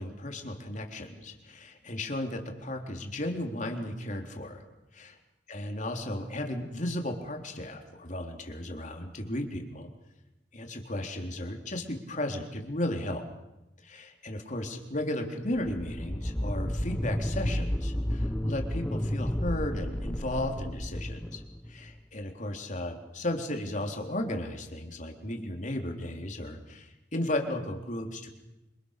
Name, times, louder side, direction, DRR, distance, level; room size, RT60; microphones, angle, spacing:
voice 1, 0.0-4.6 4.9-5.2 5.5-9.9 10.5-13.2 13.8-21.4 21.7-28.3, left 1 dB, 45° left, 3 dB, 3.8 m, -35 dB
sound 1, 15.5-22.0, equal, 10° left, 1.0 m, -32 dB
27.0 x 27.0 x 6.8 m, 0.95 s
head